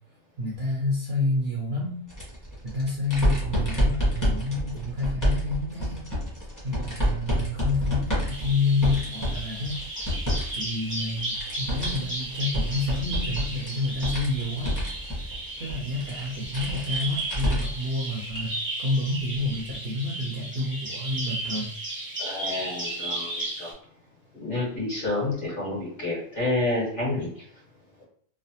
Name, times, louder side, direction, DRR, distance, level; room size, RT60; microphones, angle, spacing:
voice 1, 0.4-2.0 2.7-6.1 6.6-9.8 10.5-14.8 15.2-15.3 15.6-18.5 18.8-21.7, left 2 dB, 55° right, -3 dB, 0.8 m, -29 dB
sound 1, 2.1-10.6 10.9-17.9 18.3-18.4 19.6-19.7, equal, 15° left, 0.9 m, -29 dB
Bird vocalization bird call bird song, 8.3-23.7, right 1 dB, 10° right, 0.8 m, -35 dB
voice 2, 22.2-23.7 24.4-27.3, left 2 dB, 40° left, -6 dB, 1.5 m, -29 dB
3.2 x 2.1 x 2.7 m, 0.63 s
omnidirectional pair, 1.4 m